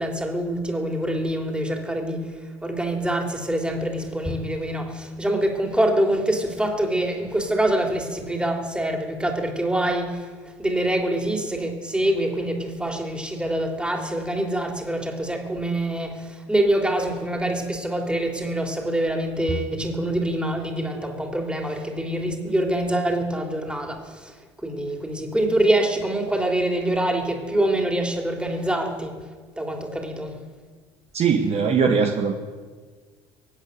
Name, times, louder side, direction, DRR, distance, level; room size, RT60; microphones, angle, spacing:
voice 1, 0.0-2.3 2.6-10.3 10.6-29.3 29.6-30.4, right 1 dB, 5° right, 2 dB, 3.3 m, -25 dB
voice 2, 31.1-32.3, right 6 dB, 45° right, 4 dB, 1.4 m, -20 dB
24.5 x 8.4 x 6.6 m, 1.5 s
hypercardioid pair, 70°, 15 cm